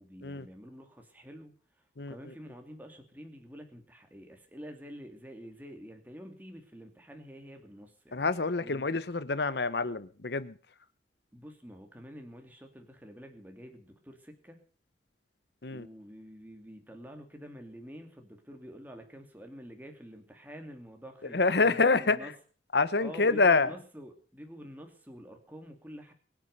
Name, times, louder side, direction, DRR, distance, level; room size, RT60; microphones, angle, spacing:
voice 1, 0.0-1.5 2.1-8.2 8.6-8.8 11.3-14.6 15.7-22.3 23.0-26.1, equal, 10° right, 4 dB, 2.7 m, -48 dB
voice 2, 8.1-10.5 15.6-15.9 21.3-22.3 22.7-23.7, left 3 dB, 60° left, 15 dB, 0.9 m, -26 dB
23.0 x 9.1 x 6.7 m, 0.41 s
head